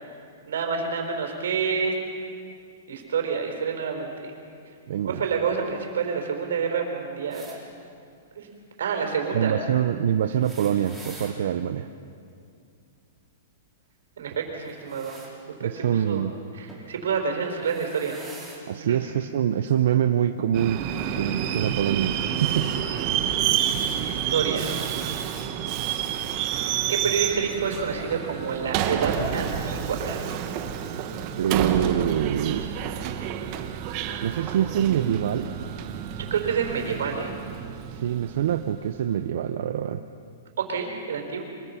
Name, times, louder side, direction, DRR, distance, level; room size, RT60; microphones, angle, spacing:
voice 1, 0.5-1.9 2.9-4.3 5.0-7.5 8.4-8.5 8.8-9.6 14.2-15.2 15.6-16.2 16.5-18.2 18.8-19.0 21.0-21.6 23.6-24.9 26.9-30.2 36.1-37.4 40.6-41.4, right 6 dB, 85° right, 3 dB, 4.7 m, -28 dB
voice 2, 4.9-5.2 9.3-11.9 15.6-16.3 18.7-20.8 21.2-22.7 31.4-32.7 33.1-33.4 34.2-35.5 37.9-40.0, right 10 dB, 55° right, 9 dB, 0.6 m, -25 dB
sound 1, 7.3-7.6 10.2-11.4 14.6-15.3 16.7-16.9 17.5-18.6 19.7-19.8 21.0-21.1, right 3 dB, ahead, 2.7 m, -45 dB
Subway metro underground, 20.5-39.0, right 9 dB, 30° right, 1.0 m, -29 dB
24.5 x 22.0 x 5.8 m, 2.4 s
hypercardioid pair, 175°, 0 cm